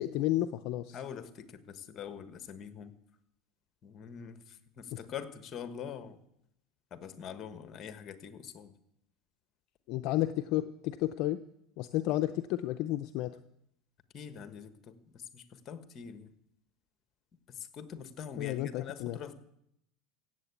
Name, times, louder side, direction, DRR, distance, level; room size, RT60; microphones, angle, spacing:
voice 1, 0.0-1.0 4.9-5.0 9.9-11.4 11.8-13.4 18.4-19.2, left 14 dB, 60° left, 10 dB, 0.5 m, -32 dB
voice 2, 0.9-2.9 3.8-6.2 6.9-8.7 14.1-16.3 17.5-19.3, left 7 dB, 35° left, 10 dB, 1.4 m, -44 dB
16.0 x 7.9 x 8.3 m, 0.79 s
supercardioid pair, 125°, 0 cm